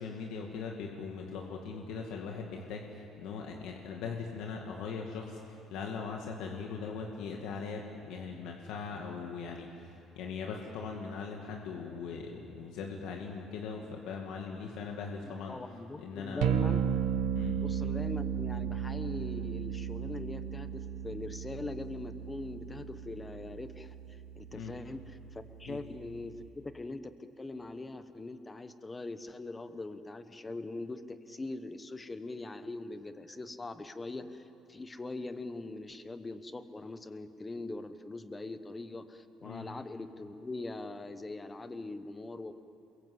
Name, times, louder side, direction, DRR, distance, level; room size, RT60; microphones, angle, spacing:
voice 1, 0.0-9.7 10.2-15.6 16.0-16.5 17.3-17.6 24.5-24.7 25.7-25.8 39.4-39.7, left 5 dB, 75° left, 1 dB, 2.2 m, -40 dB
voice 2, 15.5-16.8 17.6-42.5, left 2 dB, 15° left, 10 dB, 1.0 m, -42 dB
sound 1, 16.4-26.4, right 9 dB, 85° right, 1.3 m, -35 dB
28.5 x 22.5 x 7.9 m, 2.7 s
cardioid pair, 170°, 0 cm